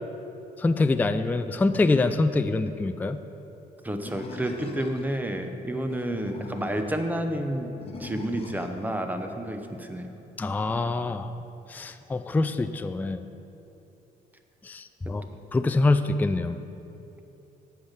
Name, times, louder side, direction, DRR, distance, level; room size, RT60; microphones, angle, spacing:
voice 1, 0.6-3.2 10.4-11.3 11.7-13.2 14.6-15.2 15.5-16.6, left 3 dB, 10° left, 9 dB, 0.3 m, -25 dB
voice 2, 3.8-7.7 8.0-10.2 15.0-15.1, right 1 dB, 10° right, 6 dB, 0.8 m, -30 dB
Animal, 4.0-5.2 5.9-7.0 7.8-8.8, left 3 dB, 35° left, 1.0 m, -41 dB
8.5 x 5.7 x 7.4 m, 2.9 s
cardioid pair, 105°, 17 cm